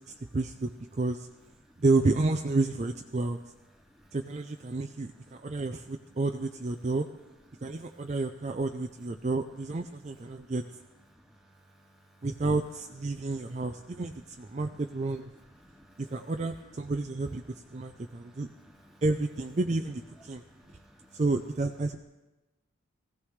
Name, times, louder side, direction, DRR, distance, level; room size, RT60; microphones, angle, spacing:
voice 1, 0.3-1.3 1.8-3.4 4.1-7.1 7.6-10.6 12.2-15.3 16.0-18.5 19.0-20.4 21.1-22.0, right 3 dB, 35° right, 5 dB, 0.4 m, -30 dB
voice 2, 15.6-16.0 17.9-18.5 18.8-19.0 20.4-21.1, equal, ahead, -2 dB, 1.8 m, -58 dB
20.5 x 16.0 x 3.2 m, 1.1 s
head